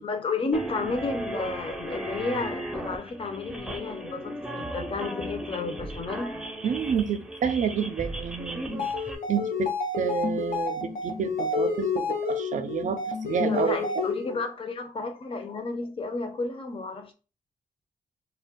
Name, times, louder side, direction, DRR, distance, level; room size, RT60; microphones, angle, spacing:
voice 1, 0.0-6.4 13.5-17.1, left 3 dB, 40° left, 0.6 m, -32 dB
sound 1, 0.5-9.2, right 1 dB, 5° right, 0.5 m, -36 dB
voice 2, 6.6-8.9 9.3-13.8, right 7 dB, 60° right, 0.4 m, -29 dB
sound 2, 8.7-14.4, left 4 dB, 90° left, 0.6 m, -29 dB
2.5 x 2.2 x 3.5 m
wide cardioid pair, 110°, 14 cm